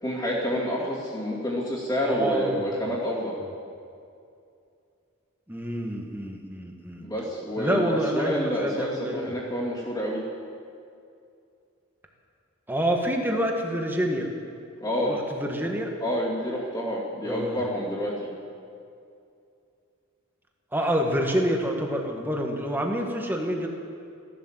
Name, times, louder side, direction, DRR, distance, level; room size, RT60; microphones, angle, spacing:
voice 1, 0.0-3.4 7.0-10.2 14.8-15.2 16.0-18.3, equal, 20° left, -8 dB, 2.7 m, -28 dB
voice 2, 2.0-2.7 5.5-7.0 7.6-9.4 12.7-14.3 15.0-15.9 17.2-17.6 20.7-23.7, equal, 10° right, 1 dB, 1.6 m, -27 dB
15.5 x 12.0 x 7.5 m, 2.5 s
head